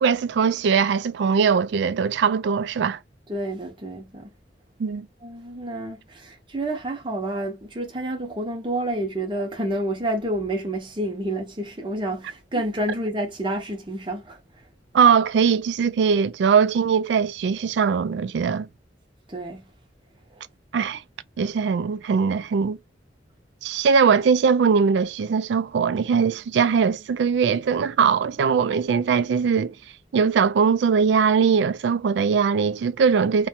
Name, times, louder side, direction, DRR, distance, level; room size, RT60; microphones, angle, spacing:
voice 1, 0.0-3.0 4.8-5.1 14.9-18.7 20.7-21.0 21.4-22.8 23.6-29.7 30.1-33.5, right 6 dB, 70° right, 0.3 m, -21 dB
voice 2, 3.3-4.3 5.2-14.4 19.3-19.6, right 1 dB, 25° right, 0.7 m, -29 dB
2.6 x 2.2 x 2.7 m
head